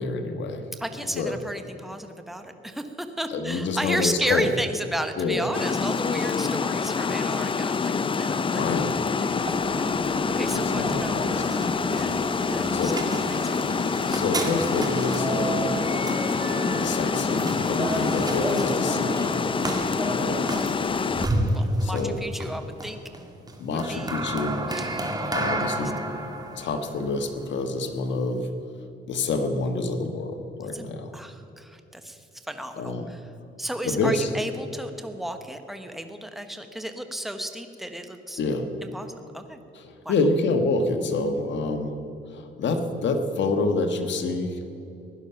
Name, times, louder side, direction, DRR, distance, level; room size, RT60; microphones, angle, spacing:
voice 1, 0.0-0.6 1.1-1.4 3.3-4.6 5.2-5.5 6.0-6.2 8.1-8.2 8.5-8.9 10.5-11.4 12.4-13.2 14.1-15.8 16.7-19.7 20.0-20.4 21.8-22.2 23.6-24.7 25.3-26.1 26.6-28.5 29.1-31.1 32.8-33.1 33.8-34.3 38.4-38.7 39.7-42.0 42.3-44.6, left 3 dB, 65° left, 6 dB, 1.5 m, -27 dB
voice 2, 0.8-8.6 9.2-12.2 12.5-13.6 14.0-14.2 21.5-23.0 23.7-24.2 24.7-25.4 25.8-25.9 30.7-33.2 33.6-38.4 38.8-39.6 40.0-40.1, right 1 dB, ahead, 7 dB, 1.1 m, -34 dB
Water, 5.5-21.3, left 5 dB, 25° left, 0.5 m, -26 dB
sound 1, 9.4-28.4, right 1 dB, 20° right, 1.9 m, -31 dB
16.5 x 11.0 x 5.8 m, 2.8 s
cardioid pair, 90°, 20 cm